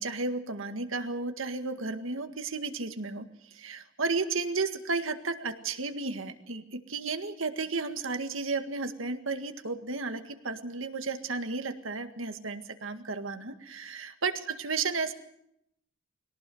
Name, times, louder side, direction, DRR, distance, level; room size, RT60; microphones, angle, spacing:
voice 1, 0.0-3.3 3.5-15.1, right 4 dB, 75° right, 8 dB, 1.9 m, -33 dB
22.0 x 18.0 x 7.8 m, 0.77 s
head